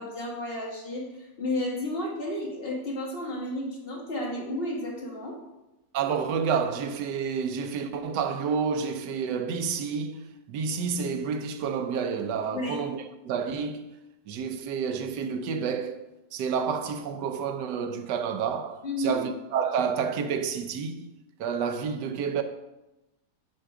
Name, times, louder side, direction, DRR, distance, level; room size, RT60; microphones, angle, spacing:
voice 1, 0.0-5.4 12.5-12.8 18.8-19.2, left 1 dB, 35° left, 1.6 m, -32 dB
voice 2, 5.9-13.8 14.3-16.1 16.3-21.1 21.4-22.4, right 6 dB, 80° right, 1.3 m, -29 dB
9.3 x 3.6 x 4.7 m
omnidirectional pair, 1.8 m